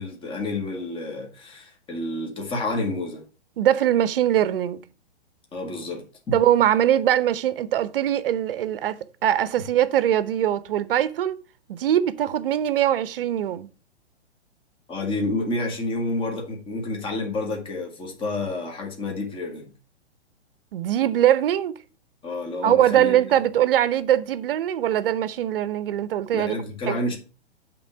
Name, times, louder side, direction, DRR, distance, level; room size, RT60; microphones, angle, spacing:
voice 1, 0.0-3.2 5.5-6.0 14.9-19.7 22.2-23.2 26.3-27.2, left 2 dB, 15° left, 1.8 m, -29 dB
voice 2, 3.6-4.8 6.3-11.4 11.7-13.7 20.7-21.8 22.6-26.5 26.9-27.0, right 11 dB, 55° right, 0.8 m, -22 dB
8.3 x 3.7 x 6.1 m
figure-of-eight pair, 120°, 34 cm